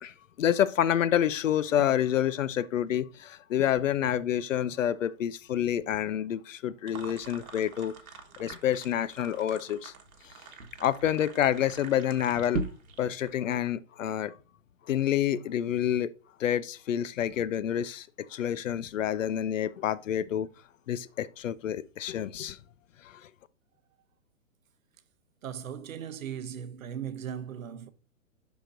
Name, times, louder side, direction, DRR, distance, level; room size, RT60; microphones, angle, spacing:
voice 1, 0.0-7.9 8.4-9.9 10.8-12.6 13.0-14.4 14.9-16.1 16.4-20.5 20.9-22.6 23.0-23.3, left 10 dB, 65° left, 0.5 m, -28 dB
sound 1, 6.9-13.3, right 4 dB, 85° right, 1.5 m, -41 dB
voice 2, 25.4-27.9, right 8 dB, 70° right, 0.9 m, -38 dB
6.9 x 6.0 x 2.6 m
hypercardioid pair, 175°, 42 cm